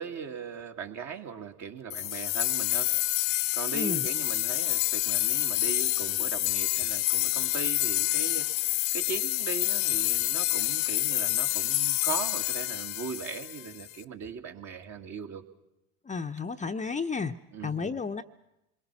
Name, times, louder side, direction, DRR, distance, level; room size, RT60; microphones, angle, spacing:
voice 1, 0.0-2.9 3.5-15.4 17.5-18.0, right 6 dB, 45° right, 4 dB, 2.3 m, -39 dB
sound 1, 1.9-13.9, left 18 dB, 65° left, 0.9 m, -28 dB
voice 2, 3.7-4.1 16.0-17.4 17.6-18.2, left 5 dB, 20° left, 7 dB, 0.8 m, -32 dB
27.0 x 22.0 x 6.1 m, 0.89 s
hypercardioid pair, 70°, 37 cm